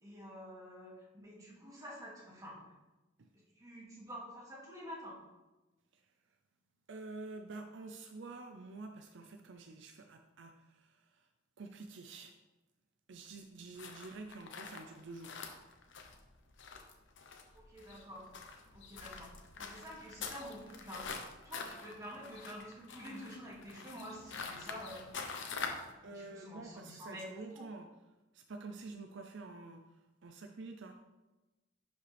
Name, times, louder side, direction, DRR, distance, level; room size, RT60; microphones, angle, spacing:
voice 1, 0.0-2.7 3.3-5.2 17.5-18.3 18.7-21.2 21.4-25.1 25.8-27.7, equal, 20° right, -5 dB, 2.4 m, -49 dB
voice 2, 6.9-11.3 11.6-12.4 13.1-15.4 26.0-27.9 28.3-31.0, right 3 dB, 65° right, 5 dB, 0.5 m, -48 dB
sound 1, 13.8-25.9, left 5 dB, 70° left, 0.9 m, -46 dB
11.0 x 5.2 x 3.4 m, 1.1 s
head